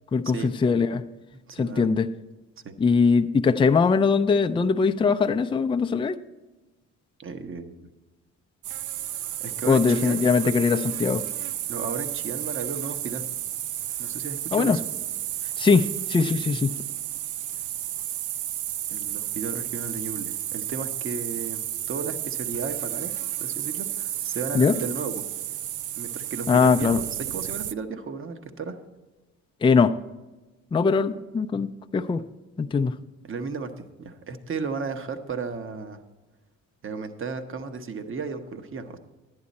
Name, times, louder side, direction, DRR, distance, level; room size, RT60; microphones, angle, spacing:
voice 1, 0.1-1.0 1.6-2.1 2.8-6.2 9.6-11.2 14.5-14.8 15.6-16.8 24.5-24.8 26.5-27.0 29.6-29.9 30.7-32.2 32.6-32.9, left 5 dB, 15° left, 8 dB, 0.4 m, -21 dB
voice 2, 1.5-1.9 2.6-2.7 7.2-7.9 9.4-10.5 11.7-13.3 14.0-14.8 18.9-21.6 21.9-23.1 23.4-25.2 25.9-28.8 33.3-36.0 36.8-39.0, right 4 dB, 45° right, 8 dB, 1.1 m, -34 dB
sound 1, 8.6-27.7, right 12 dB, 80° right, 0.5 m, -32 dB
11.5 x 9.6 x 4.2 m, 1.2 s
cardioid pair, 90°, 30 cm